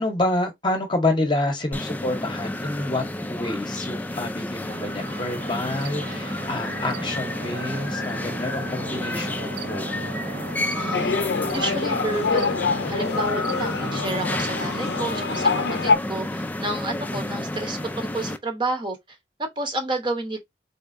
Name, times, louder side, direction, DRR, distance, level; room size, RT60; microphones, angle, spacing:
voice 1, 0.0-9.9 13.8-14.4 17.1-17.4, left 2 dB, 25° left, 0.9 m, -28 dB
sound 1, 1.7-18.4, left 1 dB, 10° left, 0.3 m, -31 dB
sound 2, 4.7-15.4, right 3 dB, 65° right, 0.6 m, -38 dB
voice 2, 10.7-11.2 11.5-15.5 15.8-19.0 19.4-20.4, right 2 dB, 25° right, 0.8 m, -30 dB
sound 3, 10.9-16.0, left 4 dB, 65° left, 0.5 m, -25 dB
4.1 x 3.2 x 2.5 m
head